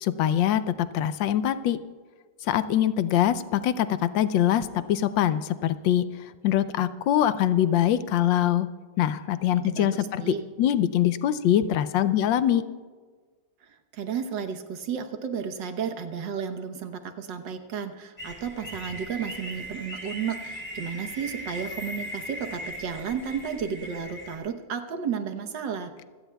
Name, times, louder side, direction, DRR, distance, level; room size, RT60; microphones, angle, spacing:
voice 1, 0.0-1.8 2.5-6.1 6.4-8.7 9.0-10.2 10.6-12.6, left 11 dB, 80° left, 13 dB, 1.3 m, -23 dB
voice 2, 9.6-10.4 13.9-25.9, right 7 dB, 75° right, 7 dB, 1.7 m, -33 dB
sound 1, 18.2-24.4, equal, 5° left, 3.6 m, -39 dB
26.0 x 17.0 x 2.3 m, 1.5 s
omnidirectional pair, 2.0 m